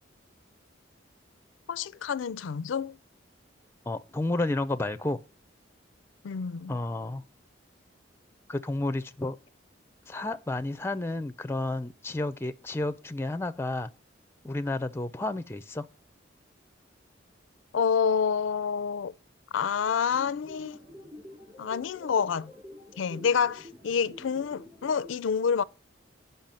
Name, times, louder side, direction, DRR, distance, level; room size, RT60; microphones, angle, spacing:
voice 1, 1.7-3.0 6.2-6.8 17.7-19.1 19.5-20.8 21.6-22.5 23.0-25.6, left 6 dB, 80° left, 0.4 m, -28 dB
voice 2, 3.9-5.2 6.7-7.2 8.5-9.4 10.1-13.9 14.4-15.8, left 2 dB, 15° left, 0.4 m, -31 dB
sound 1, 20.1-25.1, left 1 dB, 30° right, 4.2 m, -48 dB
8.9 x 5.6 x 5.5 m
head